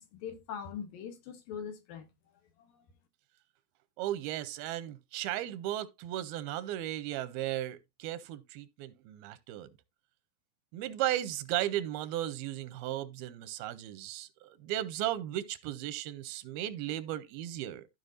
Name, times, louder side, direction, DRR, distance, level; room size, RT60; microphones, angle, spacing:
voice 1, 0.0-2.1 2.6-2.8, left 7 dB, 70° left, 2.6 m, -42 dB
voice 2, 4.0-9.7 10.7-17.9, right 13 dB, 90° right, 2.5 m, -35 dB
13.5 x 5.1 x 2.6 m
omnidirectional pair, 4.4 m